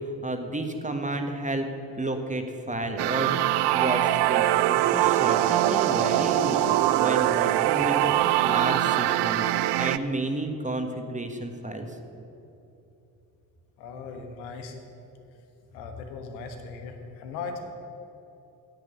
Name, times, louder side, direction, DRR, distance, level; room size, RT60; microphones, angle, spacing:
voice 1, 0.0-1.7 1.9-12.0, right 1 dB, 15° right, 5 dB, 1.5 m, -31 dB
sound 1, 3.0-10.0, right 14 dB, 55° right, 0.5 m, -23 dB
voice 2, 13.8-14.8 15.7-17.6, left 4 dB, 80° left, 5 dB, 1.4 m, -38 dB
10.5 x 8.7 x 6.7 m, 2.9 s
hypercardioid pair, 50°, 50 cm